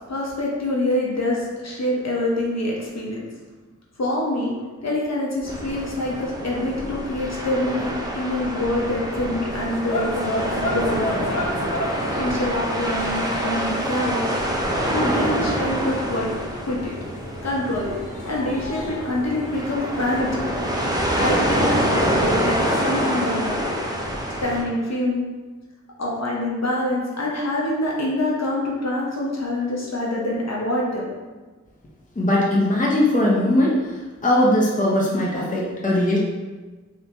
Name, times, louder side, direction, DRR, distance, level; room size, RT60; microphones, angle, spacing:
voice 1, 0.1-3.3 4.0-4.5 4.8-11.4 12.2-14.3 14.9-16.3 16.6-16.9 17.4-17.9 18.3-20.5 21.2-23.7 24.4-25.2 26.0-31.1, left 1 dB, 60° left, -4 dB, 0.9 m, -25 dB
sound 1, 5.5-24.6, equal, 15° right, 0.6 m, -26 dB
sound 2, 9.5-22.1, left 1 dB, 90° left, 0.6 m, -35 dB
voice 2, 32.2-33.9 34.2-36.2, left 1 dB, 25° left, -4 dB, 0.7 m, -19 dB
3.4 x 2.8 x 2.8 m, 1.3 s
cardioid pair, 45°, 30 cm